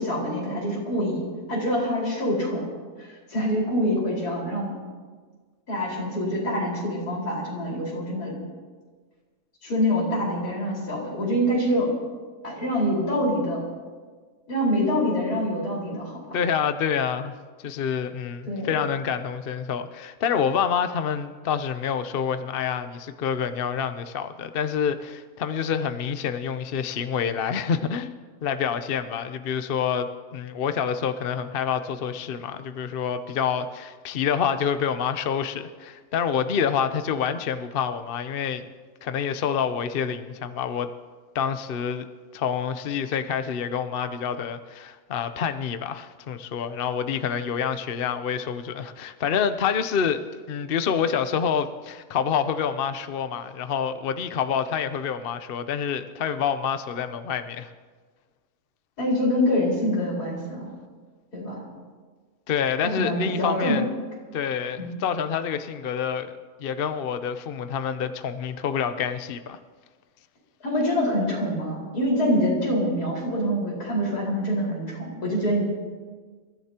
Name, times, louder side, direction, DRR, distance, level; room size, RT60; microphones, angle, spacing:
voice 1, 0.0-2.7 3.3-4.7 5.7-8.3 9.6-11.9 12.4-13.7 14.5-16.4 18.5-18.7 59.0-60.7 61.3-61.6 63.0-63.8 64.8-65.0 70.6-75.6, equal, 75° left, -4 dB, 5.4 m, -25 dB
voice 2, 16.3-28.1 28.4-38.7 39.0-40.9 41.3-42.0 42.3-50.2 50.5-57.7 62.5-63.8 64.3-69.6, left 7 dB, 50° left, 10 dB, 0.7 m, -27 dB
28.0 x 14.5 x 2.9 m, 1.5 s
omnidirectional pair, 1.7 m